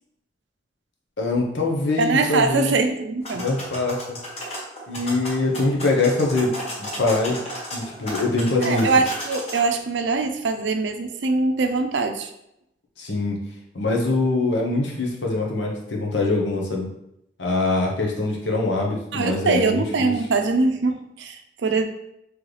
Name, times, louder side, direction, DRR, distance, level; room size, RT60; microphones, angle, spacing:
voice 1, 1.2-2.7 3.3-4.2 4.9-6.5 6.8-7.4 7.7-8.9 13.0-13.4 13.7-16.9 17.4-20.1, left 2 dB, 85° left, -1 dB, 0.9 m, -23 dB
voice 2, 2.0-3.5 8.6-12.3 19.1-21.8, right 3 dB, 80° right, 6 dB, 0.5 m, -22 dB
sound 1, 3.2-9.6, equal, 35° left, 1.1 m, -34 dB
3.9 x 3.2 x 3.2 m, 0.80 s
head